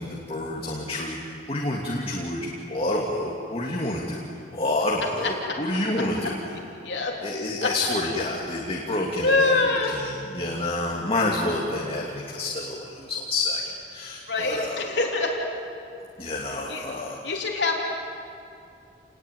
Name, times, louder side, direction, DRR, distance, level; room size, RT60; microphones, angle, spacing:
voice 1, 0.0-4.2 4.5-6.5 7.2-14.9 16.2-17.3, left 2 dB, 30° left, -2 dB, 2.6 m, -28 dB
voice 2, 6.8-7.2 7.6-7.7 9.2-9.9 14.3-15.4 16.7-16.8 17.2-17.8, left 3 dB, 65° left, -1 dB, 3.4 m, -24 dB
29.5 x 20.0 x 9.4 m, 2.6 s
head